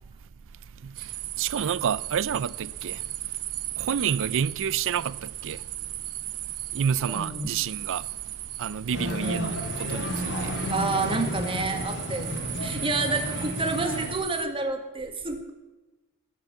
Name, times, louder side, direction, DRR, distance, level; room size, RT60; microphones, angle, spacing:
voice 1, 0.8-3.0 3.8-5.7 6.7-8.1 8.6-10.5, right 7 dB, 60° right, 0.4 m, -29 dB
sound 1, 0.9-14.5, right 14 dB, 80° right, 0.9 m, -36 dB
voice 2, 7.1-7.5 9.2-9.6 10.7-15.5, right 3 dB, 25° right, 1.9 m, -29 dB
sound 2, 8.9-14.1, left 1 dB, 55° left, 2.7 m, -32 dB
19.5 x 9.3 x 7.1 m
head